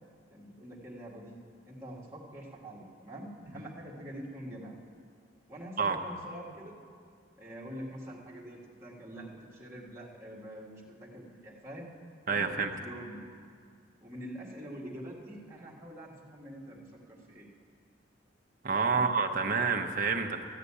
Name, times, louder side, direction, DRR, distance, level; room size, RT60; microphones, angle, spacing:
voice 1, 0.3-1.4 1.7-4.8 5.5-6.8 7.4-11.9 12.3-13.2 14.0-17.5 18.8-19.2, equal, 15° right, -6 dB, 1.8 m, -45 dB
voice 2, 12.3-12.7 18.6-20.4, right 5 dB, 45° right, 3 dB, 0.8 m, -28 dB
13.5 x 6.7 x 9.8 m, 2.2 s
head